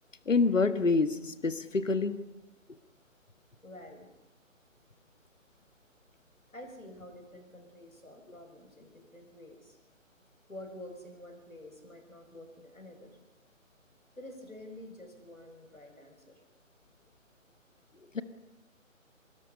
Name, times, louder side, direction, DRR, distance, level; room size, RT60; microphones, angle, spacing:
voice 1, 0.2-2.2 18.1-18.2, left 4 dB, 65° left, 12 dB, 1.7 m, -26 dB
voice 2, 3.6-4.1 6.5-9.8 10.5-13.2 14.2-16.4, left 1 dB, 90° left, 4 dB, 6.2 m, -48 dB
25.0 x 21.0 x 5.5 m, 0.94 s
figure-of-eight pair, 150°, 40 cm